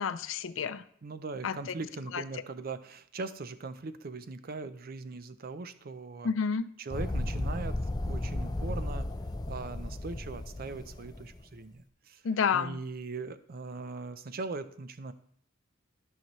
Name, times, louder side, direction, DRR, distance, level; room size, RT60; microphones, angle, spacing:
voice 1, 0.0-0.8 1.4-1.6 2.1-2.2 6.2-6.7 12.2-12.8, left 6 dB, 85° left, 14 dB, 0.5 m, -29 dB
voice 2, 1.0-6.3 6.8-7.8 8.1-9.1 9.5-12.2 12.5-15.1, right 3 dB, 50° right, 12 dB, 0.5 m, -40 dB
sound 1, 6.9-11.4, left 1 dB, 20° left, 0.5 m, -34 dB
13.5 x 5.8 x 3.1 m, 0.64 s
head